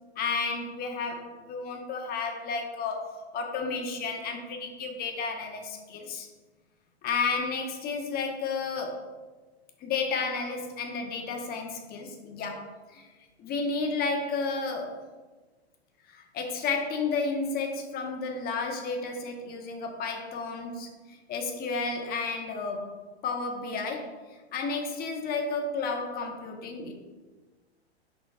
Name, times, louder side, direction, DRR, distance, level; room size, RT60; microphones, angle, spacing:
voice 1, 0.2-6.3 7.0-9.1 9.8-13.1 13.4-15.0 16.1-24.1 24.5-26.9, left 4 dB, 30° left, 3 dB, 1.0 m, -32 dB
11.0 x 4.0 x 2.4 m, 1.3 s
hypercardioid pair, 110°, 33 cm